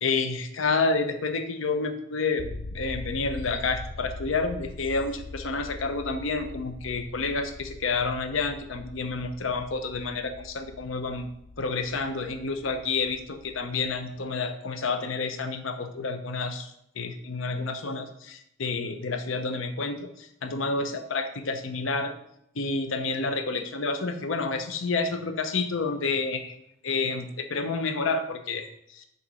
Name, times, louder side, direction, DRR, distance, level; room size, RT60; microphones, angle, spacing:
voice 1, 0.0-11.3 11.6-22.1 22.6-26.6 26.8-29.0, left 4 dB, 85° left, 8 dB, 0.7 m, -29 dB
sound 1, 2.4-14.3, left 2 dB, 45° left, 0.4 m, -42 dB
6.8 x 3.9 x 4.9 m, 0.77 s
head